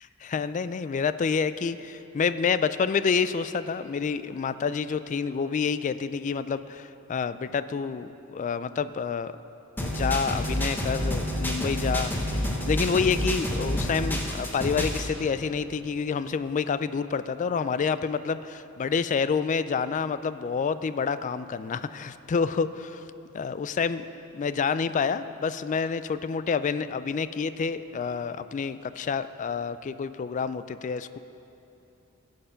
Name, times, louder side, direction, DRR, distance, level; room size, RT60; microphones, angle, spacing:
voice 1, 0.0-9.3 9.8-23.0 23.3-24.1 24.3-31.2, left 5 dB, 35° left, 13 dB, 0.3 m, -28 dB
sound 1, 9.8-15.1, equal, 10° left, 1.0 m, -28 dB
16.5 x 6.7 x 5.6 m, 3.0 s
head